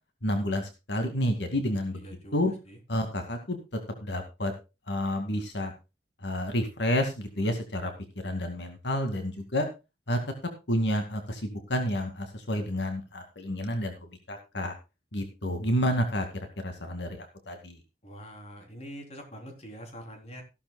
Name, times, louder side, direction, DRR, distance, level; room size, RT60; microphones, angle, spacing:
voice 1, 0.2-2.0 2.3-2.5 2.9-3.6 4.0-4.5 4.9-5.7 6.2-7.9 8.2-9.7 10.1-10.2 10.7-14.7 15.1-16.3 16.6-17.8, equal, 85° left, 5 dB, 2.3 m, -29 dB
voice 2, 2.0-2.4 2.7-2.8 18.0-20.4, equal, 40° left, 3 dB, 3.7 m, -44 dB
15.0 x 12.0 x 2.3 m, 0.27 s
head